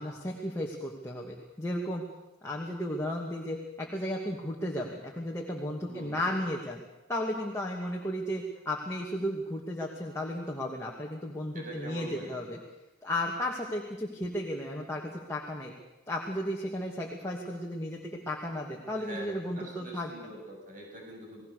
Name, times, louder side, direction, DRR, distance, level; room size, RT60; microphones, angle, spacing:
voice 1, 0.0-2.0 2.4-6.8 7.1-12.6 13.0-15.7 16.1-20.1, left 1 dB, 15° left, -2 dB, 2.5 m, -34 dB
voice 2, 5.8-6.4 11.5-12.6 18.9-21.5, equal, 40° right, 0 dB, 8.0 m, -44 dB
29.5 x 19.0 x 6.8 m, 1.0 s
head